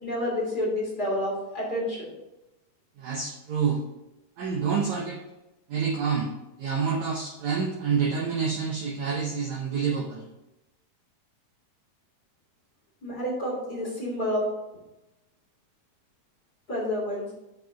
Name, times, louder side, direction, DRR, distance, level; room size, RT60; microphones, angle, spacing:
voice 1, 0.0-2.1 13.0-14.5 16.7-17.3, left 1 dB, 25° left, -4 dB, 2.9 m, -29 dB
voice 2, 3.0-3.8 4.4-5.2 5.7-6.3 6.6-10.3, right 6 dB, 70° right, 0 dB, 1.8 m, -27 dB
7.7 x 5.4 x 5.8 m, 0.97 s
omnidirectional pair, 4.3 m